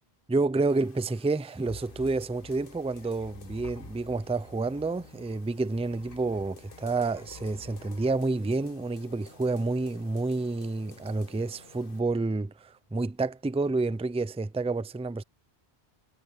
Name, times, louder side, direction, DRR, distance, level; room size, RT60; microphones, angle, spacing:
voice 1, 0.3-15.2, right 3 dB, 10° right, 0.4 m, -29 dB
sound 1, 0.7-12.0, left 5 dB, 60° left, 1.3 m, -53 dB
sound 2, 1.7-9.2, left 2 dB, 40° left, 1.7 m, -50 dB
omnidirectional pair, 1.0 m